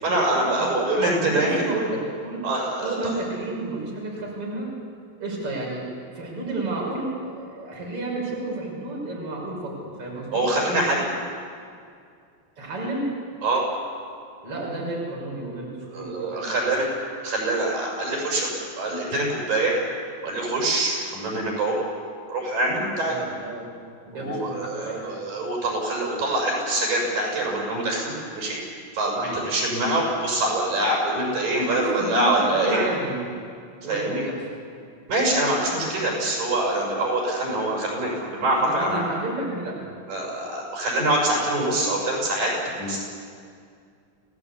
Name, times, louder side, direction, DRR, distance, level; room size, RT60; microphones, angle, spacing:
voice 1, 0.0-1.6 2.4-3.1 10.3-11.1 13.4-13.6 15.9-16.9 17.2-19.7 20.2-21.8 22.3-23.2 24.1-28.6 28.9-32.8 33.9-34.2 35.1-39.0 40.1-42.5 42.8-43.0, right 1 dB, 80° right, -2 dB, 8.2 m, -24 dB
voice 2, 0.6-2.4 2.8-4.7 5.2-5.9 6.1-10.4 12.6-13.1 14.4-16.6 23.0-25.2 29.1-29.5 31.6-33.3 33.8-34.4 38.6-39.9, right 2 dB, 40° right, -3 dB, 6.6 m, -31 dB
29.0 x 17.5 x 8.5 m, 2.3 s
omnidirectional pair, 3.9 m